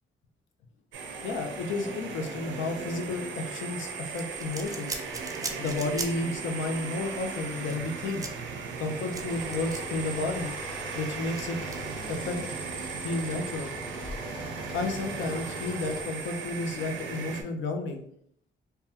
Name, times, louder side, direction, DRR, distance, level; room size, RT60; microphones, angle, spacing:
sound 1, 0.9-17.4, right 5 dB, 90° right, 0.5 m, -37 dB
voice 1, 1.2-5.0 5.6-8.2 8.8-10.5 10.9-11.6 12.1-12.4 13.0-13.7 14.7-18.0, left 3 dB, 85° left, 4 dB, 0.6 m, -32 dB
sound 2, 4.0-6.4 6.6-6.8 7.1-10.1 10.5-11.8, right 3 dB, 20° right, 0.4 m, -39 dB
sound 3, 9.2-16.0, left 1 dB, 25° left, 0.9 m, -42 dB
3.3 x 2.2 x 2.8 m, 0.67 s
cardioid pair, 95°, 19 cm